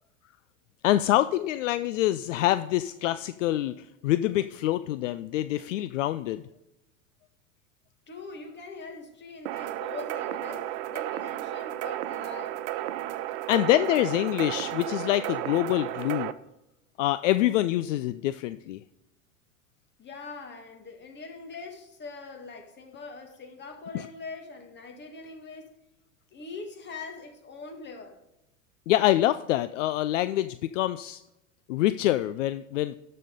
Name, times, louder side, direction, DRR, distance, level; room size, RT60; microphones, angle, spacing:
voice 1, 0.8-6.4 13.5-16.3 17.0-18.8 23.9-24.1 28.9-31.2 31.7-33.0, left 14 dB, 65° left, 0.5 m, -25 dB
voice 2, 8.1-12.6 20.0-25.7 26.3-28.2, left 3 dB, 25° left, 2.0 m, -42 dB
sound 1, 9.5-16.3, right 14 dB, 50° right, 0.7 m, -33 dB
13.0 x 4.4 x 5.3 m
hypercardioid pair, 85°, 40 cm